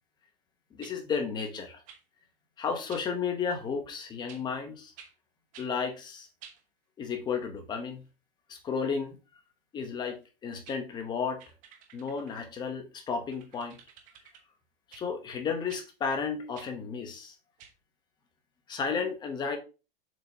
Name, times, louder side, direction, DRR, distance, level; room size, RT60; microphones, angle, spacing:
voice 1, 0.7-1.8 2.6-4.9 5.6-6.3 7.0-8.0 8.5-9.2 9.7-11.4 11.9-13.8 14.9-17.3 18.7-19.6, left 5 dB, 15° left, 0.9 m, -33 dB
sound 1, 0.8-1.0 1.9-2.0 2.9-3.1 4.3-4.5 5.0-5.1 5.5-5.7 6.4-6.6 10.2-10.3 10.6-10.8 11.4-12.5 13.3-14.4 14.9-15.1 15.7-15.9 16.5-16.7 17.6-17.7, right 7 dB, 25° right, 1.1 m, -51 dB
7.3 x 5.7 x 2.8 m
supercardioid pair, 165°, 30 cm